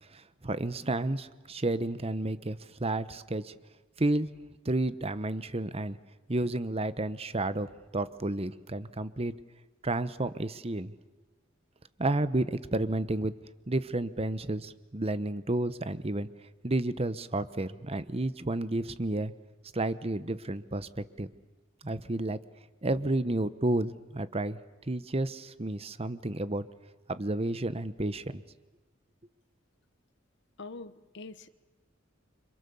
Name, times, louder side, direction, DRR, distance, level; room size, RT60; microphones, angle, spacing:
voice 1, 0.1-3.5 4.0-4.3 4.6-6.0 6.3-9.3 9.8-10.9 12.0-13.3 13.7-16.3 16.6-19.3 19.7-20.9 21.2-21.3 21.8-22.4 22.8-24.6 24.9-26.6 27.1-28.4, right 2 dB, 30° right, 14 dB, 1.0 m, -31 dB
voice 2, 30.6-31.5, left 3 dB, 60° left, 12 dB, 1.3 m, -44 dB
30.0 x 26.0 x 7.1 m, 1.2 s
head